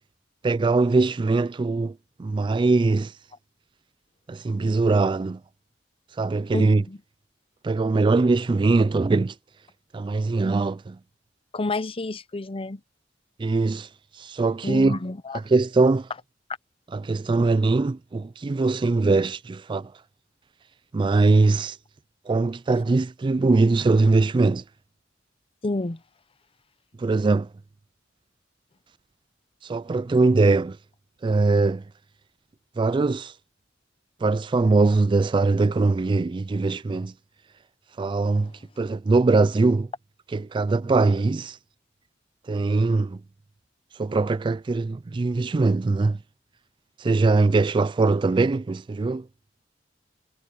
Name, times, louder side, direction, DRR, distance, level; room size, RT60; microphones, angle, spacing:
voice 1, 0.4-3.1 4.3-5.4 6.2-6.8 7.6-9.3 9.9-11.0 13.4-13.9 14.1-15.0 15.5-16.1 16.9-19.9 20.9-21.8 22.3-24.6 27.0-27.5 29.6-30.8 31.2-31.8 32.8-33.3 34.2-37.1 38.0-38.5 38.8-39.9 40.3-41.6 42.5-43.2 44.0-46.2 47.0-49.3, right 3 dB, 25° right, 0.3 m, -21 dB
voice 2, 6.5-7.0 11.5-12.8 14.6-15.4 25.6-26.0, left 2 dB, 30° left, 0.7 m, -29 dB
head